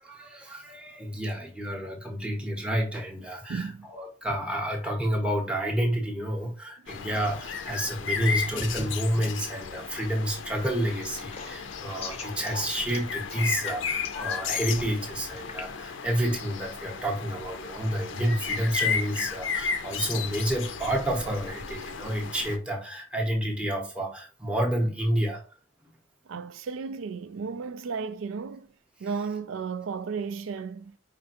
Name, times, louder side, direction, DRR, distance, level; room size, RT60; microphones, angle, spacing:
voice 1, 0.0-25.4, right 1 dB, 5° right, 0.7 m, -29 dB
voice 2, 3.5-3.9 6.8-6.9 26.3-28.7 29.0-30.9, right 5 dB, 80° right, 0.4 m, -34 dB
sound 1, 6.9-22.6, left 6 dB, 70° left, 0.5 m, -34 dB
sound 2, 10.5-15.6, left 4 dB, 30° left, 0.6 m, -44 dB
5.0 x 3.3 x 2.8 m
head